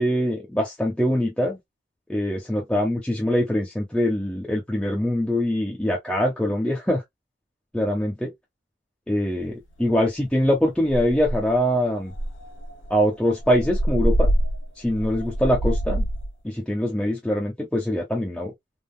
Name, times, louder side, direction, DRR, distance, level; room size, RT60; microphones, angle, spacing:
voice 1, 0.0-1.6 2.1-7.0 7.7-8.3 9.1-9.5 9.8-12.1 12.9-14.3 14.8-16.1 16.4-18.5, equal, 5° left, 0.6 m, -23 dB
sound 1, 9.4-9.5 9.9-10.2 10.5-10.6 10.9-11.6 12.1-16.3, right 1 dB, 85° left, 1.0 m, -25 dB
3.5 x 2.3 x 2.2 m
head